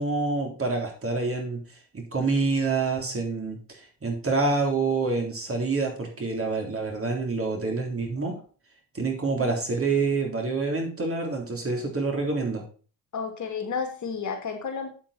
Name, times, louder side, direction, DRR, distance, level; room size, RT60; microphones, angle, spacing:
voice 1, 0.0-1.6 1.9-8.4 8.9-12.6, right 3 dB, 30° right, 1 dB, 3.6 m, -27 dB
voice 2, 13.1-14.9, left 5 dB, 40° left, 4 dB, 2.6 m, -32 dB
8.5 x 8.0 x 4.3 m, 0.38 s
supercardioid pair, 75°, 45 cm